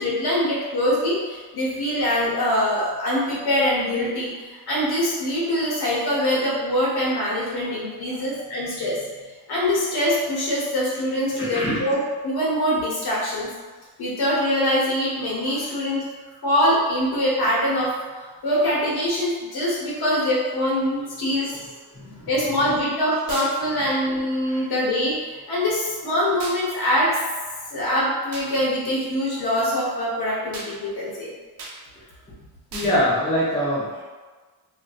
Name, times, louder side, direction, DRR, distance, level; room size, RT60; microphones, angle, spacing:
voice 1, 0.0-9.0 9.5-13.5 14.0-16.0 16.4-21.6 22.3-27.2 27.7-31.3, equal, 65° left, -6 dB, 1.1 m, -23 dB
voice 2, 11.5-11.8 15.5-15.7 21.4-21.5 21.9-22.3 23.7-23.8 24.5-24.6 32.7-34.0, equal, 15° left, -8 dB, 0.5 m, -25 dB
sound 1, 23.3-23.6 26.4-26.6 28.3-28.5 30.5-30.7 31.6-31.8 32.7-33.0, right 3 dB, 60° right, 0.6 m, -35 dB
3.9 x 2.1 x 2.4 m, 1.3 s
wide cardioid pair, 155°, 40 cm